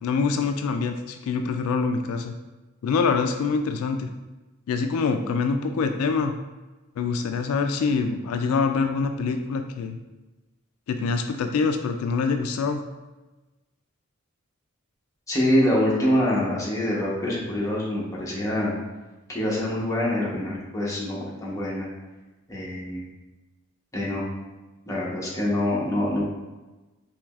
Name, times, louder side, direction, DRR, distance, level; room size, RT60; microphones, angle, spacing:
voice 1, 0.0-2.3 2.8-4.1 4.7-6.3 7.0-10.0 10.9-12.8, left 4 dB, 80° left, 11 dB, 0.3 m, -25 dB
voice 2, 15.3-18.7 19.3-21.9 22.5-23.0 23.9-24.2 24.9-26.2, left 1 dB, 15° left, -5 dB, 0.9 m, -25 dB
4.6 x 3.0 x 2.3 m, 1.1 s
head